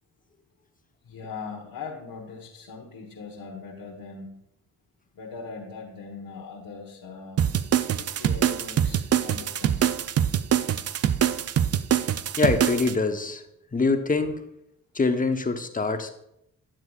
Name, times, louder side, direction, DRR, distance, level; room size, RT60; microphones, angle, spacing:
voice 1, 1.0-4.4 5.1-7.5 8.0-9.9, left 4 dB, 60° left, -4 dB, 1.4 m, -40 dB
sound 1, 7.4-12.9, right 9 dB, 40° right, 0.4 m, -24 dB
voice 2, 12.4-13.4 13.7-14.4 14.9-16.1, left 3 dB, 20° left, 7 dB, 1.0 m, -24 dB
9.7 x 7.4 x 2.4 m, 0.80 s
hypercardioid pair, 45°, 40 cm